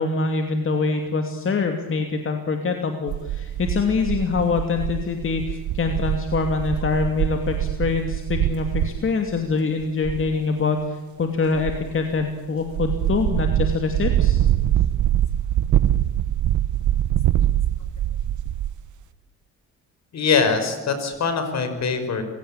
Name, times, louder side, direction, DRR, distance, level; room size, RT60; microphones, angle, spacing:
voice 1, 0.0-14.4, left 4 dB, 45° left, 5 dB, 2.8 m, -24 dB
sound 1, 3.1-9.0 9.3-9.5 9.8-10.3 11.5-12.3 12.6-18.8, right 12 dB, 75° right, 1.1 m, -23 dB
voice 2, 20.1-22.2, left 5 dB, 60° left, 8 dB, 5.5 m, -22 dB
27.0 x 17.0 x 8.8 m, 1.3 s
cardioid pair, 90°, 30 cm